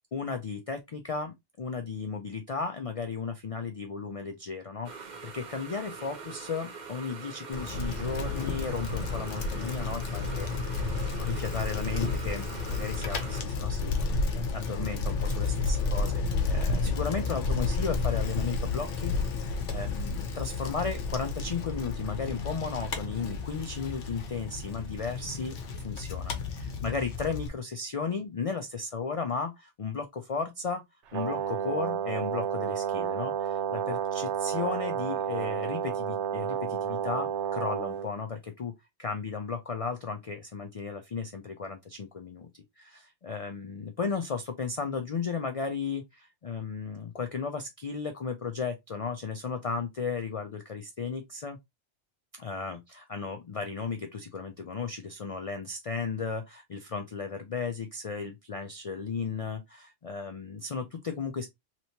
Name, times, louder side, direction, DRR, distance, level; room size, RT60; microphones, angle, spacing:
voice 1, 0.1-19.2 19.5-30.8 31.1-38.7 39.0-51.6 52.4-61.5, left 5 dB, 55° left, 0.4 m, -35 dB
sound 1, 4.8-13.4, right 4 dB, 45° right, 0.8 m, -43 dB
Bicycle, 7.5-27.5, left 3 dB, 90° left, 1.0 m, -31 dB
Brass instrument, 31.1-38.1, right 9 dB, 80° right, 0.9 m, -31 dB
3.3 x 2.9 x 2.7 m
omnidirectional pair, 1.2 m